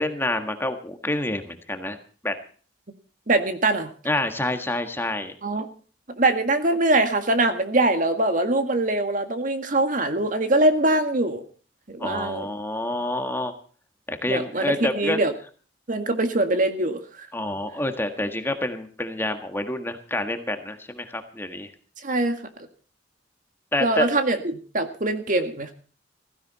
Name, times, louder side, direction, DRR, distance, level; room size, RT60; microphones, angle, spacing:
voice 1, 0.0-2.0 2.2-2.3 4.0-5.3 12.0-13.5 14.1-15.2 17.3-21.7 23.7-24.1, left 1 dB, 10° left, 7 dB, 1.6 m, -28 dB
voice 2, 3.3-3.9 5.4-5.7 6.2-11.4 11.9-12.5 14.3-15.3 15.9-17.3 22.0-22.4 23.8-25.7, right 2 dB, 45° right, 7 dB, 1.9 m, -23 dB
16.0 x 15.5 x 4.1 m, 0.41 s
head